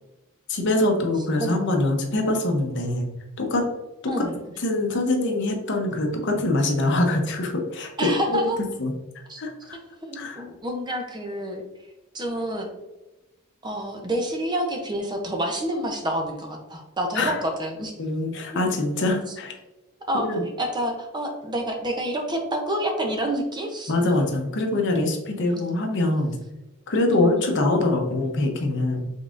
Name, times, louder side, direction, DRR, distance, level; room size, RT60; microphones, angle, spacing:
voice 1, 0.5-3.1 3.4-3.7 4.0-4.1 4.6-8.4 8.8-9.8 10.1-10.4 17.1-17.4 18.0-19.6 20.1-20.4 23.9-26.4 26.9-29.1, left 2 dB, 60° left, 3 dB, 0.8 m, -24 dB
voice 2, 4.1-4.4 8.0-8.6 9.3-9.4 10.0-11.6 12.1-12.7 13.6-17.9 18.5-18.6 19.3-19.4 20.1-23.9 27.1-27.5, right 1 dB, 20° right, 3 dB, 0.6 m, -28 dB
5.3 x 3.6 x 2.5 m, 1.0 s
head